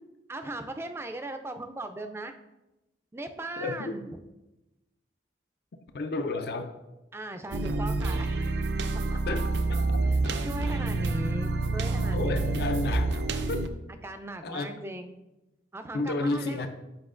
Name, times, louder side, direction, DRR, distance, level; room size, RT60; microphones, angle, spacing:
voice 1, 0.3-2.3 3.1-4.1 7.1-8.6 9.1-9.2 10.1-12.6 14.0-15.1 15.7-16.7, right 1 dB, 15° right, 7 dB, 0.4 m, -38 dB
voice 2, 3.6-3.9 5.9-6.7 9.3-10.4 12.1-13.2 13.5-13.6 14.4-14.7 15.9-16.7, left 2 dB, 60° left, 6 dB, 0.4 m, -32 dB
sound 1, 7.5-13.7, right 3 dB, 75° right, 0.5 m, -28 dB
8.3 x 5.1 x 2.5 m, 0.99 s
head